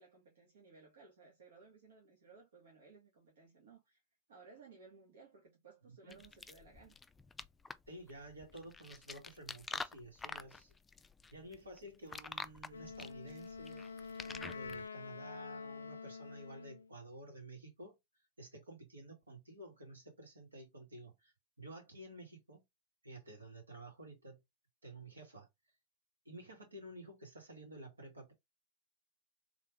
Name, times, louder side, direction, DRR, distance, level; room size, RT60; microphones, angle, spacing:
voice 1, 0.0-4.0 4.3-7.0, right 4 dB, 65° right, 1.5 m, -60 dB
voice 2, 5.9-6.3 7.9-10.7 11.3-13.8 14.2-18.0 18.4-22.6 23.0-24.4 24.8-25.5 26.2-28.3, right 1 dB, 85° right, 2.3 m, -52 dB
sound 1, 6.1-14.9, left 4 dB, 15° left, 0.4 m, -47 dB
Wind instrument woodwind instrument, 12.7-16.9, left 5 dB, 80° left, 0.4 m, -47 dB
3.6 x 3.3 x 3.5 m
figure-of-eight pair, 90°, 0 cm